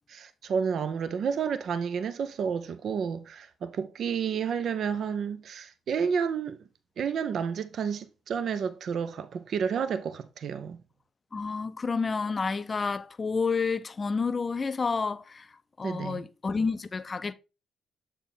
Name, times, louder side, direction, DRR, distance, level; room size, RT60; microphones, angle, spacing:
voice 1, 0.1-6.6 7.0-10.8 15.8-16.2, right 6 dB, 65° right, 0.5 m, -30 dB
voice 2, 11.3-15.5 15.8-17.3, left 4 dB, 40° left, 0.4 m, -29 dB
7.0 x 4.2 x 3.6 m
hypercardioid pair, 55°, 0 cm